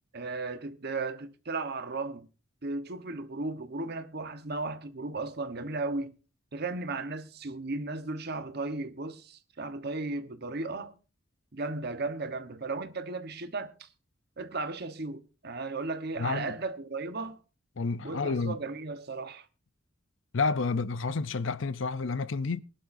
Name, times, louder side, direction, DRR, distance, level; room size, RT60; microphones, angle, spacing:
voice 1, 0.1-2.3 2.6-6.2 6.5-10.9 11.5-13.9 14.4-17.4 18.0-19.5, right 3 dB, 55° right, 1.2 m, -35 dB
voice 2, 16.2-16.6 17.8-18.6 20.3-22.6, left 4 dB, 65° left, 0.6 m, -30 dB
22.0 x 11.5 x 2.6 m
head